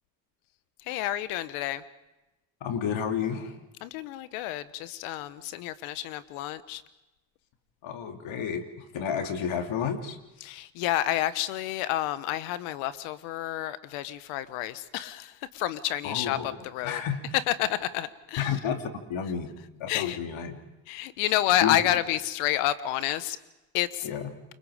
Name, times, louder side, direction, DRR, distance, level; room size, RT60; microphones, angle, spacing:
voice 1, 0.9-1.8 3.8-6.8 10.4-17.0 17.5-18.5 19.9-20.2 20.9-23.4 23.7-24.1, left 13 dB, 80° left, 14 dB, 1.3 m, -29 dB
voice 2, 2.6-3.5 7.8-8.6 8.9-10.2 16.0-16.6 16.8-17.2 18.4-19.5 19.8-20.5 21.6-21.8 24.0-24.3, left 7 dB, 65° left, 5 dB, 3.1 m, -31 dB
29.0 x 24.5 x 5.1 m, 1.0 s
supercardioid pair, 65°, 50 cm